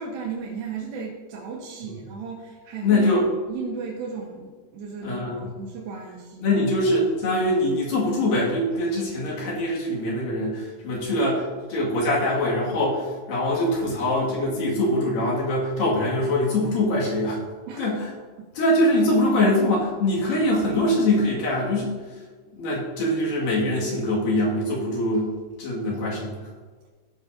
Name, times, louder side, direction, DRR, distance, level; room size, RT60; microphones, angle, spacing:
voice 1, 0.0-3.1 3.5-6.5 17.7-17.9 18.4-18.5, right 5 dB, 90° right, -3 dB, 2.9 m, -35 dB
voice 2, 2.8-3.3 5.0-5.4 6.4-17.4 17.8-18.1 18.6-21.9 22.5-25.3 25.6-26.5, left 1 dB, 75° left, -5 dB, 3.7 m, -23 dB
16.0 x 6.1 x 2.6 m, 1.4 s
omnidirectional pair, 4.0 m